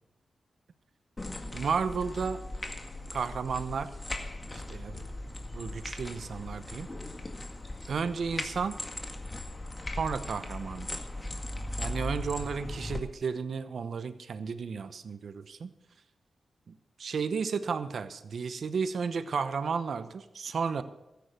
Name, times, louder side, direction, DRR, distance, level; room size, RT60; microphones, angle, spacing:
sound 1, 1.2-13.0, left 1 dB, 30° left, 1.9 m, -38 dB
voice 1, 1.5-2.4 3.1-3.9 4.5-5.1 5.5-6.9 7.9-8.8 9.9-11.1 11.8-15.7 16.7-20.8, right 5 dB, 70° right, 12 dB, 0.9 m, -33 dB
13.5 x 9.4 x 6.9 m, 0.98 s
cardioid pair, 45°, 0 cm